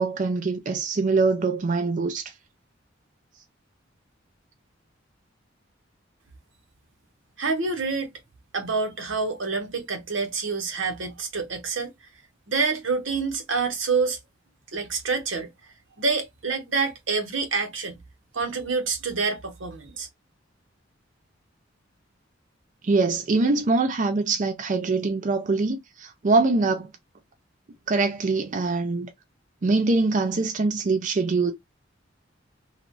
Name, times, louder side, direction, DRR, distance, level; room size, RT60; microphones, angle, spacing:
voice 1, 0.0-2.3 22.8-26.9 27.9-29.1 29.6-31.5, right 3 dB, 40° right, 0.5 m, -23 dB
voice 2, 7.4-8.1 8.5-11.9 12.5-14.2 14.7-15.5 16.0-18.0 18.3-20.1, right 4 dB, 85° right, 1.0 m, -27 dB
3.0 x 2.4 x 2.5 m
head